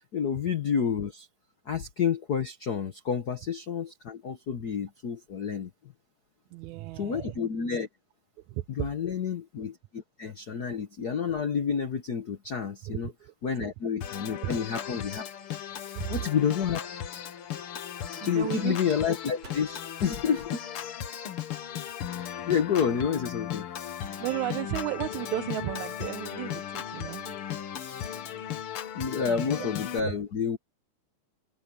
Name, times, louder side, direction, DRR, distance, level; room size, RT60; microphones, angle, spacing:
voice 1, 0.1-1.3 1.7-5.7 6.9-7.9 8.7-13.1 13.4-15.6 16.1-16.8 18.2-20.6 22.2-23.7 28.0-28.2 28.9-30.6, left 7 dB, 85° left, 0.8 m, -29 dB
voice 2, 6.5-7.4 8.5-8.9 12.8-13.3 14.4-14.7 16.0-16.2 18.2-18.8 24.2-27.4 29.5-29.7 30.0-30.1, right 17 dB, 80° right, 2.0 m, -34 dB
Organ, 14.0-30.0, left 10 dB, 55° left, 1.8 m, -37 dB
sound 1, 15.7-16.3 18.8-20.8, right 3 dB, 60° right, 5.6 m, -53 dB
omnidirectional pair, 3.5 m